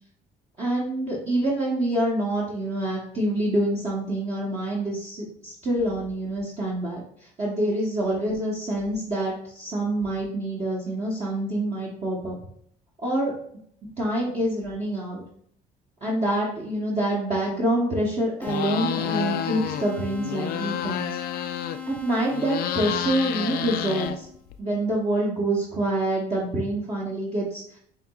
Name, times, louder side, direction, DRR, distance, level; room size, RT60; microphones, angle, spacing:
voice 1, 0.6-7.0 7.4-12.4 13.0-13.3 13.8-15.2 16.0-21.1 21.9-24.3 24.6-27.8, right 1 dB, 40° right, -5 dB, 1.1 m, -26 dB
sound 1, 18.4-19.9 20.2-22.0 22.3-24.5, left 10 dB, 65° left, 0.4 m, -30 dB
sound 2, 18.4-24.4, left 7 dB, 10° left, 0.5 m, -38 dB
6.8 x 2.9 x 2.4 m, 0.63 s
cardioid pair, 110°, 17 cm